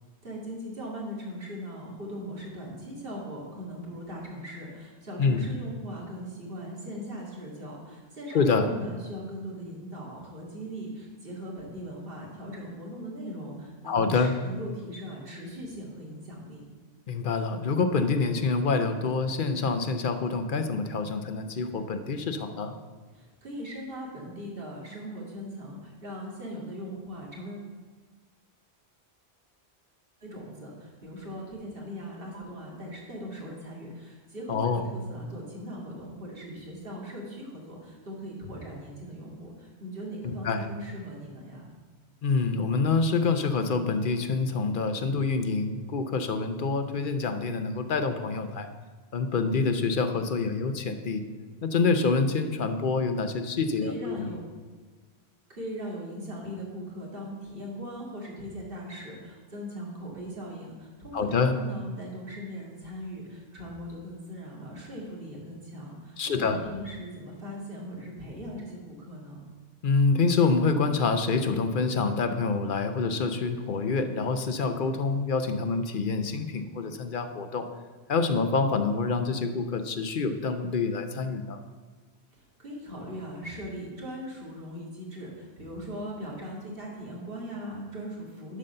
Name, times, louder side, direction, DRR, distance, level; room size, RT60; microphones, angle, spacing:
voice 1, 0.2-16.6 23.1-27.7 30.2-41.7 53.5-54.4 55.5-69.4 82.3-88.6, equal, 60° right, -3 dB, 2.3 m, -39 dB
voice 2, 8.3-8.7 13.8-14.3 17.1-22.7 34.5-34.8 40.2-40.7 42.2-48.7 49.1-51.2 51.6-54.3 61.1-61.5 66.2-66.6 69.8-77.7 78.1-81.6, left 4 dB, 55° left, 8 dB, 0.8 m, -26 dB
11.0 x 4.0 x 6.6 m, 1.4 s
omnidirectional pair, 1.1 m